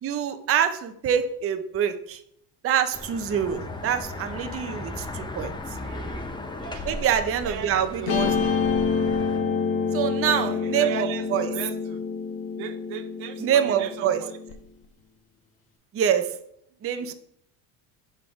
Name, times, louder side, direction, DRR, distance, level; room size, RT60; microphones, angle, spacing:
voice 1, 0.0-2.2 2.6-5.5 6.8-8.6 9.9-11.5 13.4-14.2 15.9-16.3 16.8-17.1, right 9 dB, 30° right, 9 dB, 0.6 m, -25 dB
sound 1, 2.9-9.4, left 2 dB, 10° left, 0.6 m, -36 dB
voice 2, 5.8-6.9 7.4-8.1 10.3-12.0 12.5-14.4 17.0-17.1, right 9 dB, 75° right, 9 dB, 0.8 m, -38 dB
Guitar, 8.1-14.5, left 5 dB, 50° left, 1.2 m, -27 dB
5.5 x 4.9 x 3.5 m, 0.69 s
supercardioid pair, 95°, 46 cm